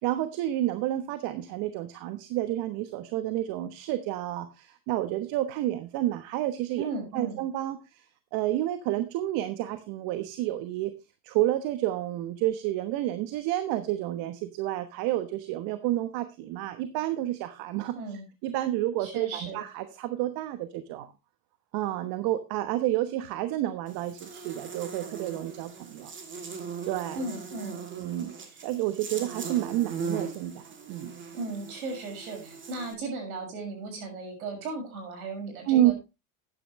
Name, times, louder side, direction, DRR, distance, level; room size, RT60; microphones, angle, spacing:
voice 1, 0.0-6.9 7.1-8.1 8.3-10.9 11.2-18.0 18.4-21.1 21.7-26.5 26.9-27.2 27.9-31.1 35.7-35.9, right 14 dB, 55° right, 11 dB, 1.2 m, -30 dB
voice 2, 6.8-7.4 17.9-18.2 19.0-19.6 27.1-27.8 31.3-35.9, right 3 dB, 80° right, 3 dB, 6.5 m, -36 dB
Buzz, 23.9-32.9, right 5 dB, 25° right, 2.7 m, -39 dB
12.5 x 9.9 x 3.2 m, 0.26 s
hypercardioid pair, 95°, 42 cm